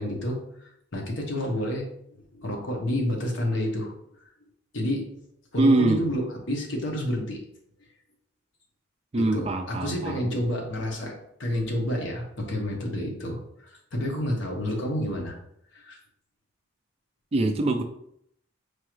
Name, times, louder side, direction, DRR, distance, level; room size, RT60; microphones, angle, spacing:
voice 1, 0.0-1.9 2.3-3.9 4.7-5.0 5.5-6.2 6.5-7.4 9.2-15.3 15.7-16.0, left 1 dB, 60° left, 1 dB, 0.9 m, -29 dB
voice 2, 5.6-6.0 9.1-10.4 17.3-17.8, right 2 dB, 30° right, 6 dB, 0.3 m, -23 dB
4.6 x 2.4 x 3.0 m, 0.72 s
head